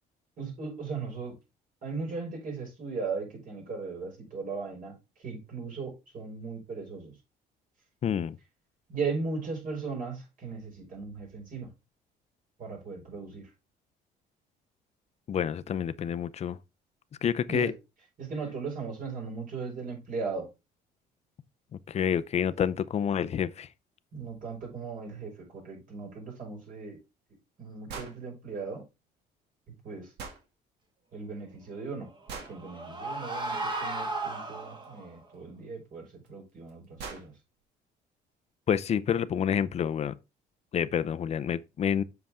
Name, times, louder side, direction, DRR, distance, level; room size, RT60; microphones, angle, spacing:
voice 1, 0.4-1.4 1.8-7.1 8.9-11.7 12.6-13.5 17.5-17.7 18.2-20.5 24.1-27.0 27.6-28.8 29.7-30.1 31.1-32.1 32.5-37.3, right 4 dB, 55° right, 5.4 m, -37 dB
voice 2, 8.0-8.4 15.3-16.6 17.2-17.7 21.9-23.7 38.7-40.2 40.7-42.0, left 8 dB, 40° left, 0.6 m, -28 dB
sound 1, 27.9-28.2 30.2-30.4 32.3-32.6 34.8-34.9 36.3-36.4 36.7-36.8 37.0-37.3, right 5 dB, 75° right, 2.2 m, -40 dB
sound 2, 32.1-35.1, right 2 dB, 25° right, 1.7 m, -35 dB
7.6 x 5.8 x 3.6 m
cardioid pair, 110°, 17 cm